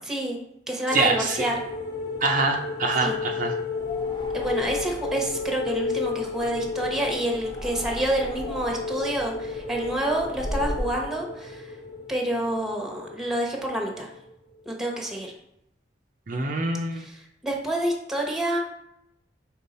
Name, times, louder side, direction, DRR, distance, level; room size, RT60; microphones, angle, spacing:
voice 1, 0.1-0.4 0.7-1.5 3.0-3.2 4.3-11.7 12.1-14.1 14.6-15.3 17.0-17.1 17.4-18.6, right 1 dB, 5° right, 0 dB, 1.0 m, -28 dB
sound 1, 0.9-14.3 14.6-14.8, left 3 dB, 50° left, 1.4 m, -33 dB
voice 2, 0.9-1.5 2.2-3.5 16.3-17.1, right 3 dB, 45° right, 2 dB, 0.6 m, -25 dB
sound 2, 3.7-11.0, equal, 25° left, 0.7 m, -37 dB
5.4 x 4.3 x 4.2 m, 0.80 s
head